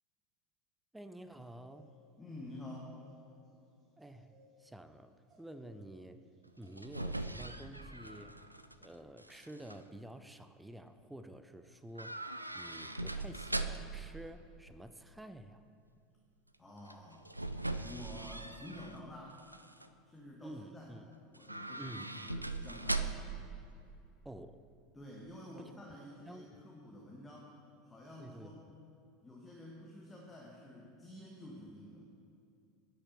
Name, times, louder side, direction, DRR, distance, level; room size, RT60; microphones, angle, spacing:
voice 1, 0.9-1.9 4.0-6.3 6.6-8.4 8.8-15.6 20.4-21.1 21.8-22.3 24.2-24.6 26.2-26.6 28.2-28.6, right 1 dB, 5° right, 11 dB, 0.4 m, -50 dB
sound 1, 1.4-2.0 2.3-2.4 2.6-7.2, right 1 dB, 30° right, 2.5 m, -65 dB
voice 2, 2.2-3.0 16.6-17.3 17.8-19.4 20.0-20.9 21.2-23.1 24.9-28.6 29.2-32.1, left 1 dB, 15° left, -2 dB, 1.3 m, -50 dB
sound 2, 6.5-8.9 9.2-9.8 12.0-14.1 16.8-19.0 19.4-19.9 21.3-23.4 23.7-23.8, right 2 dB, 90° right, 0.3 m, -40 dB
9.9 x 5.8 x 6.8 m, 2.6 s
figure-of-eight pair, 75°, 0 cm